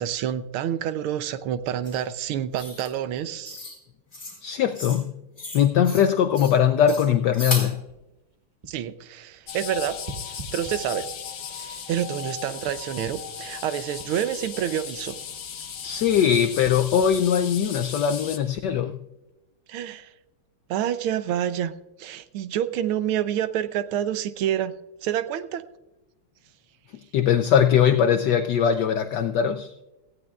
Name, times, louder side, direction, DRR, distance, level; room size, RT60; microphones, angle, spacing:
voice 1, 0.0-3.6 8.7-10.0 10.5-11.1 11.5-15.1 19.7-20.1 20.7-21.7 22.0-24.7 25.0-25.6, right 10 dB, 80° right, 12 dB, 1.5 m, -28 dB
sound 1, 1.8-2.0 2.5-2.9 3.5-3.8 4.1-4.4 4.7-5.0 5.4-6.1 6.3-6.6 6.9-7.7, left 2 dB, 20° left, 2.9 m, -34 dB
voice 2, 4.4-5.1 5.5-7.8 15.8-19.0 27.1-29.7, left 8 dB, 85° left, 8 dB, 0.9 m, -21 dB
sound 2, 6.2-8.9 9.2-11.4 11.9-15.5 15.7-18.5 19.1-19.3, right 2 dB, 25° right, 1.0 m, -46 dB
sound 3, 9.5-18.4, left 8 dB, 55° left, 1.3 m, -37 dB
17.5 x 15.0 x 2.4 m, 1.0 s
omnidirectional pair, 2.4 m